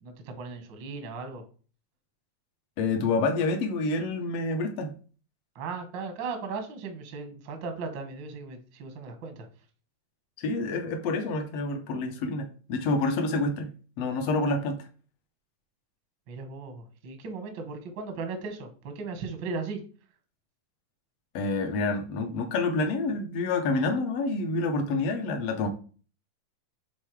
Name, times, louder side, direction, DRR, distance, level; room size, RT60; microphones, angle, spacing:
voice 1, 0.0-1.4 5.5-9.5 16.3-19.8, right 4 dB, 75° right, 6 dB, 1.0 m, -37 dB
voice 2, 2.8-4.9 10.4-13.7 14.0-14.8 21.3-25.7, left 3 dB, 80° left, 5 dB, 1.4 m, -28 dB
7.4 x 3.7 x 4.7 m, 0.39 s
omnidirectional pair, 4.0 m